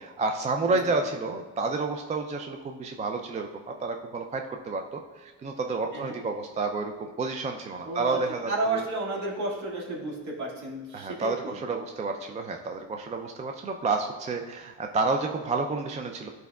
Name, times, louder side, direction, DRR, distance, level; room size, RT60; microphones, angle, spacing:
voice 1, 0.0-8.8 10.9-16.3, right 3 dB, 20° right, 4 dB, 0.4 m, -30 dB
voice 2, 7.8-8.2 8.5-11.6, right 2 dB, 55° right, -3 dB, 2.0 m, -32 dB
11.5 x 4.6 x 2.3 m, 1.3 s
cardioid pair, 115°, 34 cm